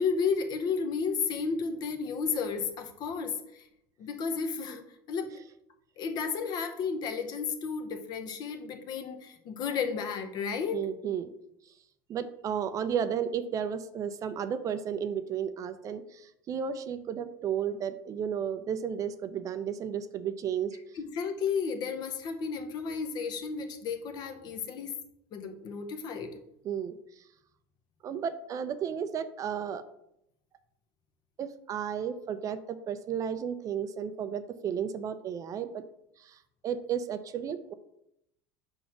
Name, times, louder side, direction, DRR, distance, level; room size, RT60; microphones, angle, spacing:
voice 1, 0.0-3.6 4.0-4.8 5.1-5.3 6.0-10.8 21.0-24.9 25.3-26.3, left 5 dB, 50° left, 7 dB, 1.0 m, -32 dB
voice 2, 10.7-11.3 12.1-20.8 26.6-27.0 28.0-29.8 31.4-35.8 36.2-36.4 36.6-37.7, right 8 dB, 40° right, 10 dB, 0.5 m, -33 dB
4.9 x 4.0 x 5.8 m, 0.78 s
supercardioid pair, 100°, 9 cm